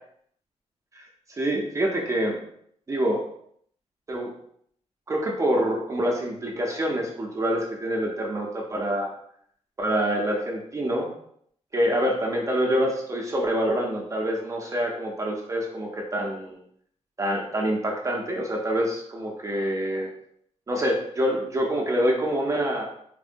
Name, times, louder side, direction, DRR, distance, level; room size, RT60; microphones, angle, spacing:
voice 1, 0.9-2.4 2.9-3.2 4.1-4.3 5.1-9.1 9.8-11.1 11.7-16.6 17.2-20.1 20.7-22.9, equal, 25° right, -1 dB, 0.4 m, -26 dB
3.5 x 2.0 x 2.5 m, 0.67 s
wide cardioid pair, 140°, 12 cm